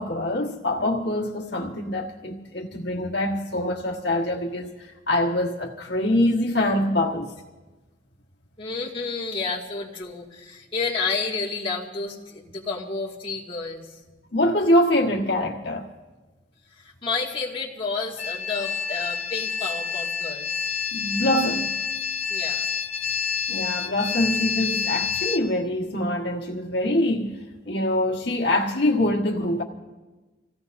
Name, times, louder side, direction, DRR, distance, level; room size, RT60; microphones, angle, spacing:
voice 1, 0.0-7.3 14.3-15.9 20.9-21.8 23.5-27.4 27.6-29.6, left 1 dB, 65° left, 1.4 m, -24 dB
voice 2, 8.6-13.9 16.8-20.5 22.3-22.7, left 4 dB, 30° left, 2.1 m, -30 dB
sound 1, 18.2-25.4, left 6 dB, 80° left, 1.8 m, -28 dB
27.0 x 17.0 x 2.6 m
head